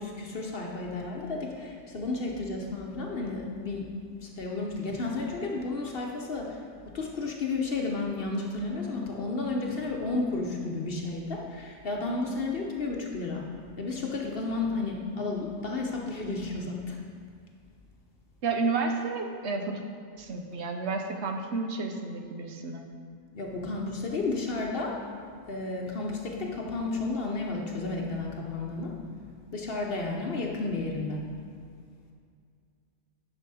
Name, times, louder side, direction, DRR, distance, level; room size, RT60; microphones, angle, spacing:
voice 1, 0.0-17.2 23.3-31.5, left 3 dB, 55° left, 0 dB, 1.0 m, -32 dB
voice 2, 18.4-19.8 20.2-22.8, right 4 dB, 70° right, 4 dB, 1.1 m, -31 dB
10.0 x 6.2 x 4.1 m, 2.2 s
omnidirectional pair, 1.2 m